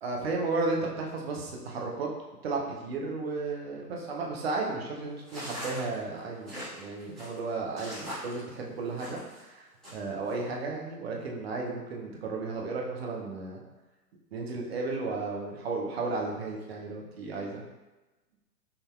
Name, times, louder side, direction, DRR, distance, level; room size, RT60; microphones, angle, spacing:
voice 1, 0.0-2.1 2.4-13.6 14.3-17.6, right 3 dB, 40° right, -1 dB, 0.7 m, -34 dB
sound 1, 5.2-9.4 9.8-10.3, equal, ahead, 1.3 m, -41 dB
5.6 x 2.7 x 2.3 m, 1.1 s
figure-of-eight pair, 125°, 49 cm